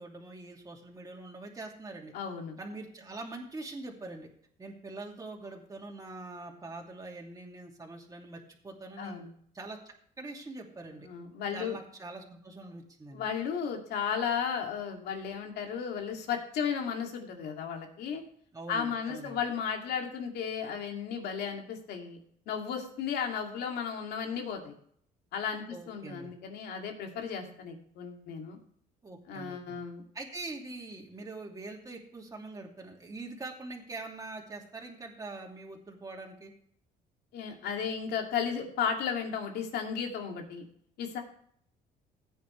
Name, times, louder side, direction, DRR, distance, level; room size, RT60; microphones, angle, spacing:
voice 1, 0.0-2.1 2.6-4.3 4.6-9.2 9.5-11.1 11.5-13.3 18.5-19.4 25.7-26.3 29.0-29.8 30.1-36.5, right 2 dB, 20° right, 0 dB, 2.7 m, -43 dB
voice 2, 2.1-2.6 9.0-9.3 11.0-11.8 13.1-18.2 18.7-22.2 22.5-24.7 25.3-28.6 29.3-30.0 37.3-40.6 41.0-41.2, left 7 dB, 75° left, 3 dB, 2.6 m, -34 dB
15.5 x 9.3 x 3.3 m, 0.63 s
cardioid pair, 110°, 17 cm